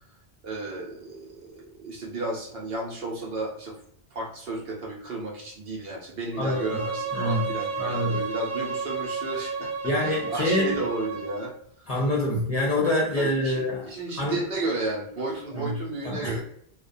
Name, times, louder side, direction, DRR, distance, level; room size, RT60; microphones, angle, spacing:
voice 1, 0.4-3.7 4.1-9.7 10.0-11.5 13.1-16.4, right 2 dB, 70° right, -2 dB, 0.8 m, -33 dB
Bowed string instrument, 6.3-11.5, right 5 dB, 50° right, 0.4 m, -32 dB
voice 2, 6.4-6.8 7.1-7.5 7.8-8.2 9.8-10.8 11.9-13.9 14.2-14.4 15.5-15.7 16.0-16.4, left 1 dB, 45° left, -4 dB, 0.6 m, -26 dB
2.3 x 2.1 x 2.5 m, 0.65 s
omnidirectional pair, 1.1 m